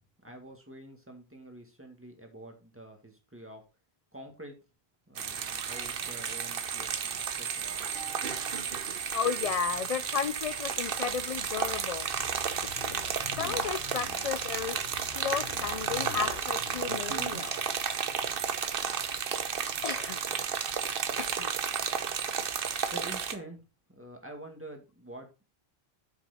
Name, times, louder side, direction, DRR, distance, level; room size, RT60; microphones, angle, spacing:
voice 1, 0.2-3.6 4.1-4.6 5.1-7.9 22.9-23.6 24.0-25.4, right 1 dB, 10° right, 1.9 m, -47 dB
sound 1, 5.2-23.4, right 7 dB, 60° right, 1.0 m, -33 dB
sound 2, 8.9-18.4, left 8 dB, 70° left, 0.9 m, -47 dB
voice 2, 9.1-12.1 12.6-12.8 13.4-14.8 15.1-17.6 19.8-20.2 21.2-21.5, left 7 dB, 55° left, 0.4 m, -33 dB
8.4 x 6.1 x 4.2 m
omnidirectional pair, 1.1 m